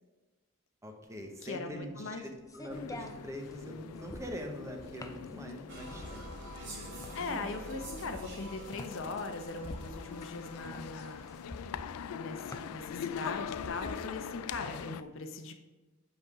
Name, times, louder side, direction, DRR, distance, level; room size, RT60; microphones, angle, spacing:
voice 1, 0.8-6.3, equal, 15° right, 3 dB, 0.9 m, -43 dB
sound 1, 1.1-15.0, left 1 dB, 15° left, 0.5 m, -48 dB
voice 2, 1.4-2.2 7.1-11.3 12.1-15.5, left 3 dB, 60° left, 6 dB, 0.8 m, -40 dB
sound 2, 2.7-15.0, left 8 dB, 80° left, 0.3 m, -43 dB
sound 3, 5.7-11.9, right 1 dB, 55° right, 2.4 m, -47 dB
8.0 x 5.3 x 4.9 m, 1.2 s
head